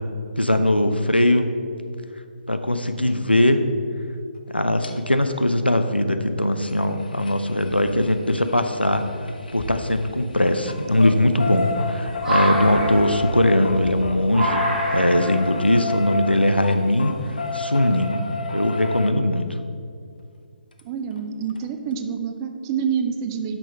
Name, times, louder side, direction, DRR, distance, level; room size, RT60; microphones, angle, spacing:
voice 1, 0.4-1.5 2.5-3.6 4.5-9.0 9.5-17.2 17.5-18.2 18.5-19.5, left 1 dB, 90° left, 8 dB, 0.6 m, -20 dB
sound 1, 4.8-4.9 6.6-10.1 10.4-19.1 20.8-20.9 21.2-21.3 21.6-21.7, left 3 dB, 60° left, 0.8 m, -31 dB
sound 2, 7.7-8.3 8.9-9.0 9.5-17.5, right 1 dB, ahead, 2.1 m, -29 dB
voice 2, 20.8-23.6, right 7 dB, 20° right, 7 dB, 0.5 m, -27 dB
8.5 x 6.2 x 4.5 m, 2.4 s
figure-of-eight pair, 140°, 5 cm